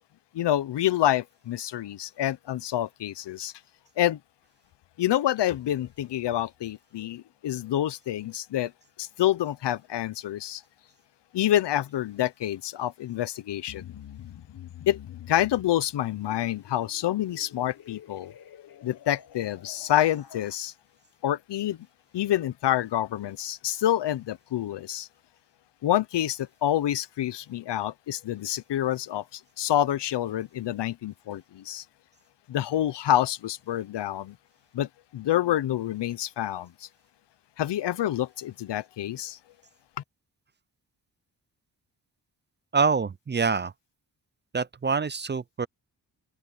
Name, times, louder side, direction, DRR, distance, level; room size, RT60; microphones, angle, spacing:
voice 1, 0.3-3.5 4.0-4.2 5.0-8.7 9.0-10.6 11.3-13.9 14.9-15.0 15.3-18.3 18.8-20.7 21.2-21.8 22.1-25.1 25.8-31.8 32.5-34.4 34.7-36.9 37.6-39.4, left 12 dB, 80° left, 0.9 m, -27 dB
sound 1, 13.7-20.6, left 10 dB, 60° left, 1.2 m, -47 dB
voice 2, 42.7-43.7 44.5-45.7, right 5 dB, 25° right, 0.5 m, -25 dB
cardioid pair, 70°, 41 cm